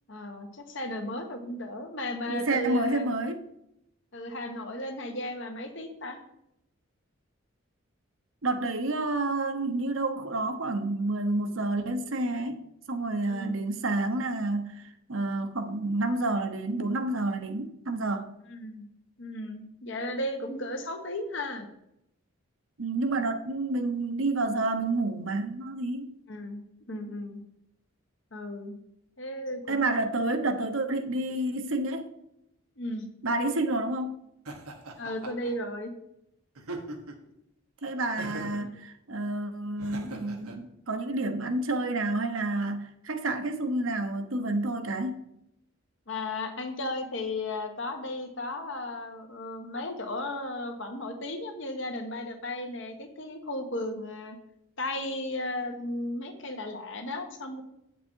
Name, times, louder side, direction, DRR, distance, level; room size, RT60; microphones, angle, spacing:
voice 1, 0.1-3.1 4.1-6.2 13.3-13.6 18.5-18.9 19.2-21.7 26.3-27.4 28.3-28.8 29.2-30.0 30.3-30.4 32.8-33.1 34.9-35.9 46.1-54.4 54.8-57.6, left 1 dB, 60° left, 1.3 m, -35 dB
voice 2, 2.3-3.4 8.4-12.6 12.9-18.3 22.8-26.1 29.7-32.1 33.2-34.2 37.8-45.2, right 2 dB, 65° right, 1.0 m, -29 dB
Laughter, 34.4-35.5 36.5-37.3 38.2-38.7 39.8-40.6, right 2 dB, 90° right, 1.4 m, -40 dB
8.4 x 7.1 x 4.6 m
head